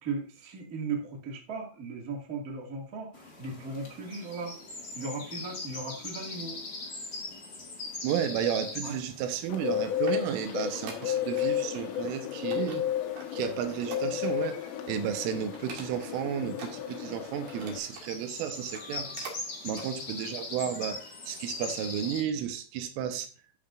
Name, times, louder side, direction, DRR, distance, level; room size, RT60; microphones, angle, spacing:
voice 1, 0.0-4.6 4.9-6.6 8.8-9.0 23.0-23.1, right 4 dB, 70° right, 0 dB, 0.8 m, -37 dB
sound 1, 3.1-22.2, left 3 dB, 55° left, 1.0 m, -43 dB
voice 2, 8.0-12.8 13.3-14.5 14.9-19.1 19.6-21.0 21.3-23.3, right 9 dB, 90° right, 8 dB, 3.5 m, -32 dB
Bird, 9.5-17.8, left 10 dB, 85° left, 3.5 m, -33 dB
sound 2, 9.7-11.5 11.7-12.1 12.5-14.7 15.0-15.1 15.5-16.2 16.5-18.1 18.6-19.4 19.7-19.9 20.4-20.5, right 4 dB, 55° right, 2.7 m, -46 dB
12.0 x 6.9 x 2.6 m, 0.37 s
omnidirectional pair, 5.7 m